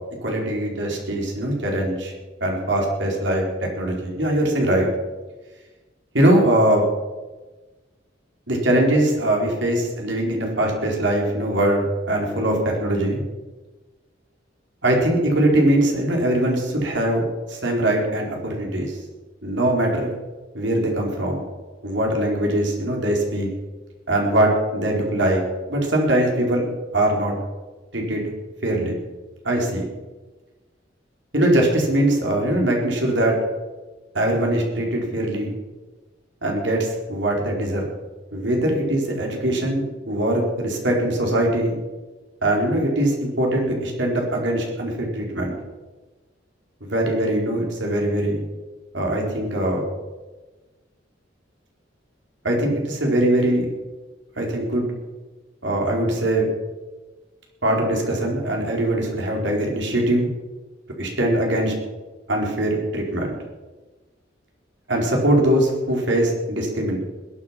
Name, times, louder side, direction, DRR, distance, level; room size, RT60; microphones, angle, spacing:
voice 1, 0.2-2.1 2.4-3.5 3.7-4.9 6.1-6.8 8.5-13.2 14.8-17.2 17.5-19.0 19.4-20.1 20.5-21.4 21.8-23.5 24.1-25.4 25.7-26.6 26.9-27.3 27.9-28.2 28.6-29.0 29.4-29.9 31.3-33.3 34.1-35.5 36.4-37.9 38.3-41.7 42.4-45.5 46.8-48.4 48.9-49.8 52.4-53.7 54.4-54.9 55.6-56.5 57.6-60.3 61.0-61.7 62.3-63.3 64.9-67.0, right 1 dB, 70° right, 0 dB, 4.4 m, -21 dB
21.0 x 9.7 x 5.9 m, 1.2 s
head